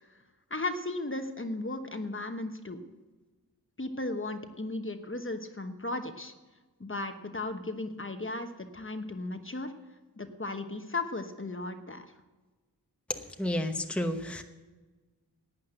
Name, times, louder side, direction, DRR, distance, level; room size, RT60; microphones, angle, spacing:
voice 1, 0.5-2.8 3.8-6.3 6.8-9.7 10.2-12.0, left 2 dB, 30° left, 7 dB, 1.1 m, -35 dB
voice 2, 13.1-14.4, left 1 dB, 5° left, 5 dB, 1.0 m, -31 dB
11.5 x 8.7 x 7.8 m, 1.2 s
wide cardioid pair, 60°, 39 cm